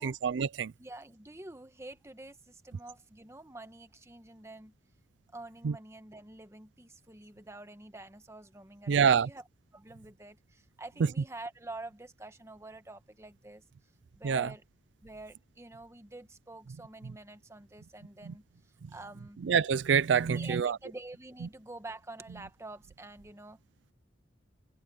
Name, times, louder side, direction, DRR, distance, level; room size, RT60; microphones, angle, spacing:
voice 1, 0.0-0.7 5.6-5.7 8.9-9.3 14.2-14.5 18.3-18.4 19.4-20.8, right 7 dB, 80° right, 0.4 m, -26 dB
voice 2, 0.8-4.7 5.3-9.4 9.7-13.6 14.1-14.6 15.0-18.4 18.9-19.4 20.2-23.6, right 2 dB, 15° right, 1.3 m, -47 dB
head